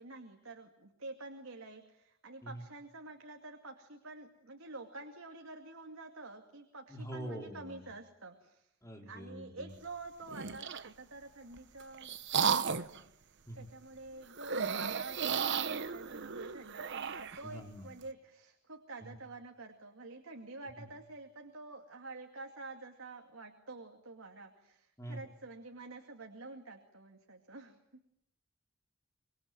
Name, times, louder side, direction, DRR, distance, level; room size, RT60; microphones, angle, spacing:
voice 1, 0.0-8.7 9.0-13.0 13.5-28.0, right 3 dB, 80° right, 3 dB, 2.4 m, -48 dB
voice 2, 6.9-7.9 8.8-9.7 13.5-13.7 17.4-17.9 19.0-19.2 20.8-20.9 25.0-25.2, right 1 dB, 15° left, 2 dB, 4.2 m, -45 dB
sound 1, 10.3-10.9 11.6-13.0 14.4-17.4, right 6 dB, 60° right, 1.0 m, -34 dB
25.5 x 22.0 x 9.2 m, 0.78 s
head